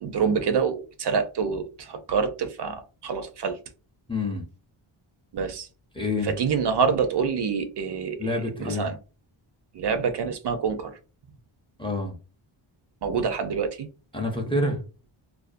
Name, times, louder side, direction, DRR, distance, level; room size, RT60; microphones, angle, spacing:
voice 1, 0.0-3.6 5.3-5.7 6.2-9.0 9.7-11.0 13.0-13.9, right 6 dB, 55° right, 0.5 m, -26 dB
voice 2, 4.1-4.4 5.9-6.3 8.2-8.9 11.8-12.1 14.1-14.8, left 2 dB, 10° left, 0.5 m, -27 dB
2.4 x 2.1 x 2.4 m
wide cardioid pair, 110°, 50 cm